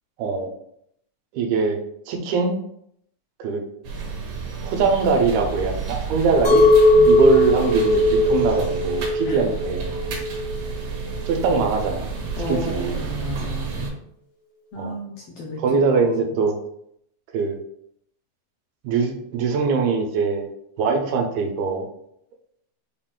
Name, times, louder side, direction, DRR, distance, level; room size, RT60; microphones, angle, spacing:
voice 1, 1.3-1.8 2.1-2.6 3.4-3.6 4.6-6.6 7.1-9.9 11.3-12.1 12.5-13.0 14.8-15.0 15.6-16.6 17.3-17.6 18.8-20.5 20.8-21.9, right 4 dB, 85° right, 4 dB, 2.1 m, -22 dB
sound 1, 3.8-13.9, right 5 dB, 70° right, 1.4 m, -31 dB
Chink clink, 6.4-11.6, left 1 dB, 55° left, 0.9 m, -19 dB
voice 2, 12.4-13.9 14.7-16.1, left 1 dB, 75° left, -2 dB, 1.4 m, -33 dB
5.5 x 2.4 x 3.6 m, 0.72 s
omnidirectional pair, 3.3 m